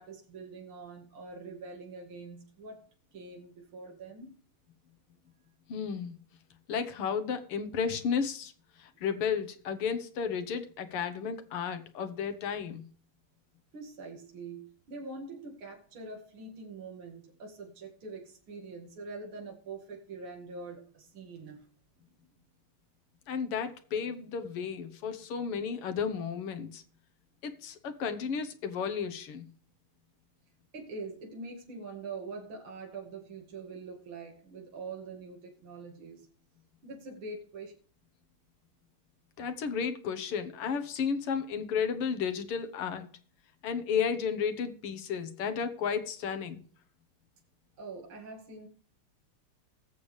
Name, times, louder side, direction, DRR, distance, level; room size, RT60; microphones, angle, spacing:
voice 1, 0.0-4.4 13.7-21.7 30.7-36.3 36.8-37.7 47.8-48.7, right 3 dB, 70° right, 2.9 m, -44 dB
voice 2, 5.7-6.2 6.7-8.5 8.8-12.8 23.3-26.8 27.4-29.5 39.4-43.1 43.6-46.6, left 6 dB, 90° left, 2.1 m, -33 dB
19.5 x 7.3 x 3.3 m
omnidirectional pair, 2.4 m